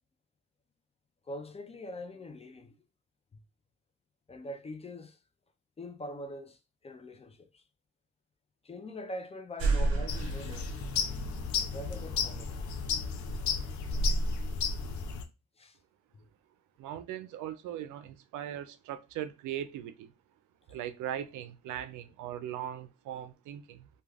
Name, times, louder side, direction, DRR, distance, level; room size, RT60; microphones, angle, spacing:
voice 1, 1.2-2.8 3.3-3.4 4.3-5.2 5.8-7.6 8.6-10.7 11.6-12.6 15.6-15.8 16.1-16.3, left 1 dB, 20° left, 0.4 m, -43 dB
sound 1, 9.6-15.1, right 2 dB, 50° right, 1.1 m, -33 dB
sound 2, 10.1-15.2, left 6 dB, 75° left, 0.5 m, -34 dB
voice 2, 16.8-20.1 20.7-23.9, right 10 dB, 80° right, 0.5 m, -39 dB
2.3 x 2.3 x 3.2 m
cardioid pair, 90°, 30 cm